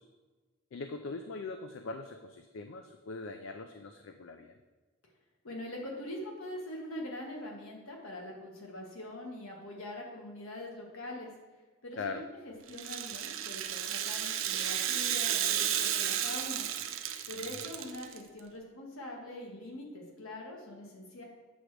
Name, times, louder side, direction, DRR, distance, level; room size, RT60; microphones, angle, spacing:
voice 1, 0.7-4.6 12.0-12.2 17.3-17.6, left 3 dB, 65° left, 7 dB, 0.4 m, -41 dB
voice 2, 5.4-11.3 11.8-16.7 17.3-21.2, left 1 dB, 80° left, 0 dB, 1.5 m, -43 dB
Rattle (instrument), 12.7-18.2, right 10 dB, 70° right, 0.5 m, -33 dB
7.9 x 6.0 x 3.3 m, 1.3 s
head